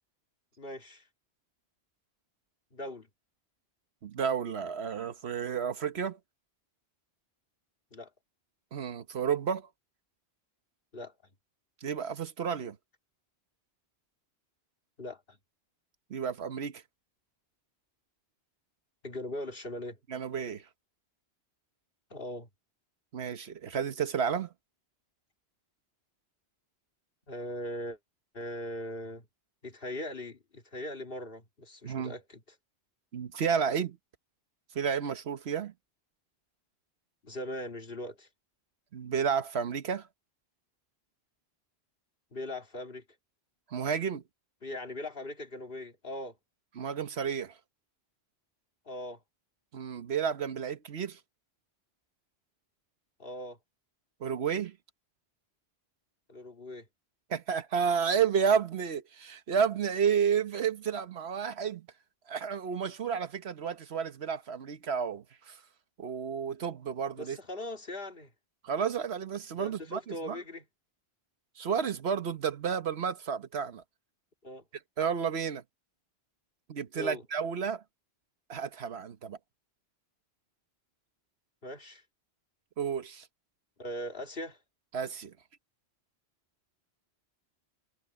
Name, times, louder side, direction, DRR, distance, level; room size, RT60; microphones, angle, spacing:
voice 1, 0.6-1.0 2.7-3.1 7.9-8.1 10.9-11.1 15.0-15.4 19.0-20.0 22.1-22.5 27.3-28.0 28.3-29.3 29.6-32.4 37.2-38.3 42.3-43.0 44.6-46.4 48.9-49.2 53.2-53.6 56.3-56.9 67.1-68.3 69.5-70.6 74.4-74.6 76.9-77.2 81.6-82.0 83.8-84.6, left 1 dB, 60° left, 2.9 m, -40 dB
voice 2, 4.0-6.2 8.7-9.7 11.8-12.8 16.1-16.8 20.1-20.6 23.1-24.5 31.8-32.1 33.1-34.0 34.7-35.7 38.9-40.1 43.7-44.2 46.8-47.5 49.7-51.2 54.2-54.8 57.3-61.9 62.3-65.6 66.0-67.4 68.6-70.4 71.6-73.8 75.0-75.6 76.7-77.8 78.5-79.4 82.8-83.3 84.9-85.3, right 7 dB, 80° right, 1.3 m, -31 dB
omnidirectional pair, 1.1 m